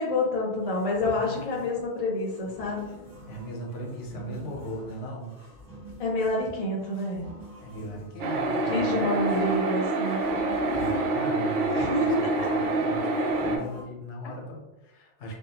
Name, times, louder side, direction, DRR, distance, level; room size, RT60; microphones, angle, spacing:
voice 1, 0.0-2.8 6.0-7.2 8.5-10.3 11.7-12.5, left 2 dB, 40° left, -2 dB, 0.6 m, -28 dB
sound 1, 0.6-13.8, right 2 dB, 20° right, 1.2 m, -47 dB
voice 2, 1.0-1.6 3.3-5.3 7.6-9.2 10.7-15.4, equal, 85° left, 0 dB, 1.0 m, -38 dB
sound 2, 8.2-13.6, right 2 dB, 90° right, 0.9 m, -27 dB
2.7 x 2.2 x 2.7 m, 1.0 s
omnidirectional pair, 1.2 m